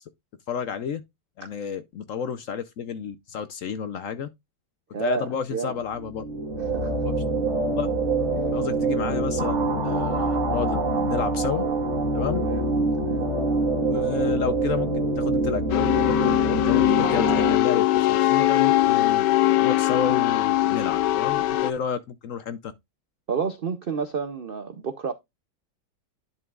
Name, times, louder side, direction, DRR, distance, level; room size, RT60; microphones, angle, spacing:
voice 1, 0.5-1.0 1.4-4.3 5.0-6.2 7.0-7.2 7.6-7.9 8.5-11.6 12.1-12.4 13.8-14.9 15.2-19.3 19.6-22.7, left 7 dB, 65° left, 0.8 m, -31 dB
voice 2, 4.9-5.8 6.7-6.9 8.3-8.4 12.4-12.7 13.0-13.3 23.3-25.1, right 5 dB, 65° right, 0.5 m, -30 dB
sound 1, 6.0-17.6, right 2 dB, 45° right, 1.8 m, -25 dB
sound 2, 15.7-21.7, left 16 dB, 85° left, 1.3 m, -21 dB
11.0 x 5.7 x 2.3 m
omnidirectional pair, 1.8 m